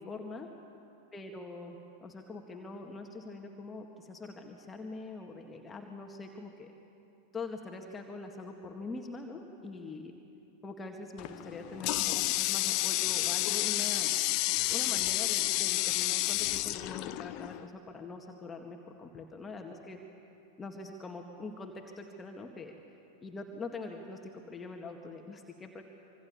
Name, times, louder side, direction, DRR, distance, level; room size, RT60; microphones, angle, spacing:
voice 1, 0.0-0.5 1.1-6.7 7.3-10.1 10.6-14.1 14.7-20.0 20.6-22.7 23.2-24.2 24.5-25.9, left 3 dB, 15° left, 3 dB, 2.0 m, -43 dB
Water tap faucet, 11.2-17.7, left 17 dB, 40° left, 0.8 m, -30 dB
26.0 x 25.0 x 7.1 m, 2.8 s
figure-of-eight pair, 90°, 0 cm